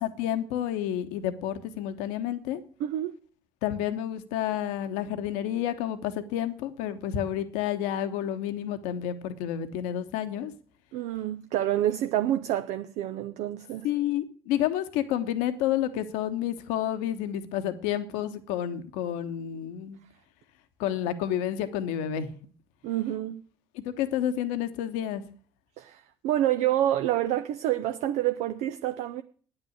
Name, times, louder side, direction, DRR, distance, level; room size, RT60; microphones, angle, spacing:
voice 1, 0.0-2.6 3.6-10.5 13.8-20.0 20.8-22.3 23.7-25.2, left 11 dB, 75° left, 1.1 m, -30 dB
voice 2, 2.8-3.2 10.9-13.9 22.8-23.4 25.8-29.2, right 12 dB, 70° right, 0.6 m, -28 dB
9.6 x 9.0 x 7.9 m
hypercardioid pair, 50°, 13 cm